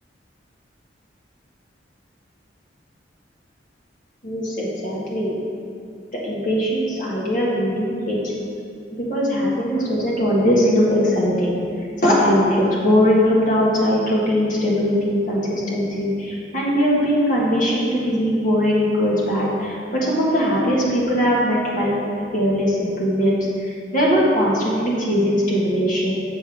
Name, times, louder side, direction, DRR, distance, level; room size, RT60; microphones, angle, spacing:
voice 1, 4.2-5.3 6.1-8.3 8.9-11.6 12.0-21.9 22.3-26.2, equal, 45° left, -5 dB, 1.6 m, -20 dB
6.9 x 3.8 x 6.0 m, 2.4 s
head